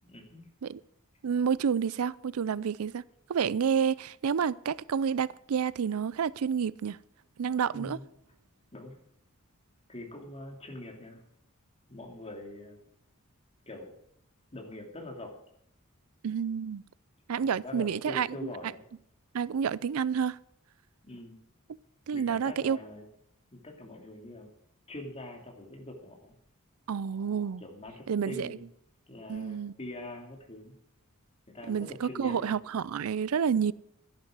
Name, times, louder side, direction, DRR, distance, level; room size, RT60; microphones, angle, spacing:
voice 1, 0.0-0.5 7.7-8.1 8.7-9.0 9.9-11.2 11.9-12.8 13.7-13.9 14.5-15.4 17.4-18.8 21.0-21.4 22.1-23.0 23.5-24.5 24.9-26.3 27.6-28.6 29.1-30.7 31.5-32.6, left 1 dB, 30° left, 2.8 m, -43 dB
voice 2, 1.2-3.0 3.3-7.0 7.4-8.0 16.2-16.8 17.3-18.5 19.3-20.4 22.1-22.8 26.9-27.6 28.1-28.5 29.3-29.7 31.7-33.7, right 7 dB, 85° right, 0.4 m, -29 dB
13.0 x 10.5 x 6.1 m
head